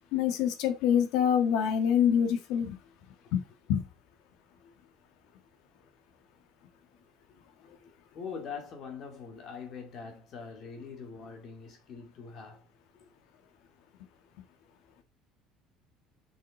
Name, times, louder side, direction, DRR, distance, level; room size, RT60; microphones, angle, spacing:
voice 1, 0.1-2.8 3.3-3.4 3.7-3.9, left 8 dB, 60° left, 1.5 m, -25 dB
voice 2, 8.1-12.7, left 5 dB, 35° left, 2.3 m, -43 dB
6.5 x 5.6 x 4.2 m
cardioid pair, 180°, 0 cm